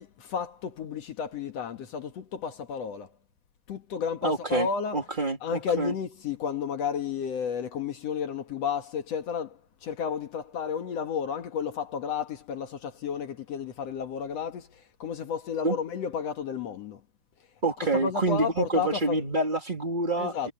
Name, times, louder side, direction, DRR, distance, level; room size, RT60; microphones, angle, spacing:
voice 1, 0.0-3.1 3.7-5.1 5.4-17.0 17.8-19.3 20.2-20.5, left 7 dB, 60° left, 1.8 m, -32 dB
voice 2, 4.2-4.7 4.9-5.9 15.6-15.7 17.6-20.5, right 2 dB, 20° right, 1.5 m, -27 dB
omnidirectional pair, 4.9 m